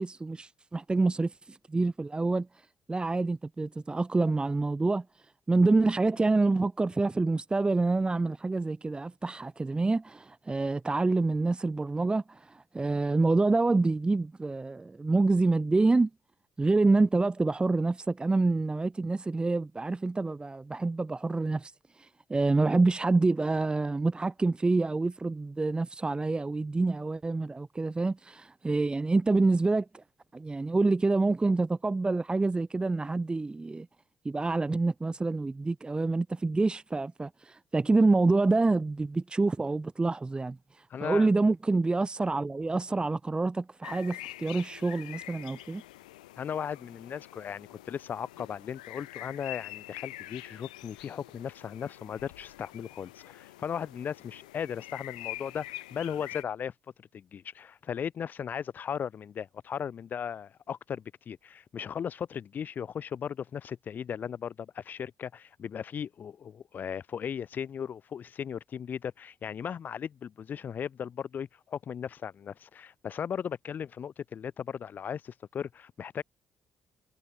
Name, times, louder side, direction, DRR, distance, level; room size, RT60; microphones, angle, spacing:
voice 1, 0.0-5.0 5.5-16.1 16.6-30.0 30.3-33.9 34.2-45.8, right 3 dB, 25° right, 1.0 m, -27 dB
voice 2, 40.9-41.3 46.4-56.7 57.1-76.2, left 8 dB, 50° left, 0.6 m, -37 dB
sound 1, 43.8-56.4, left 17 dB, 80° left, 2.2 m, -45 dB
figure-of-eight pair, 45°, 4 cm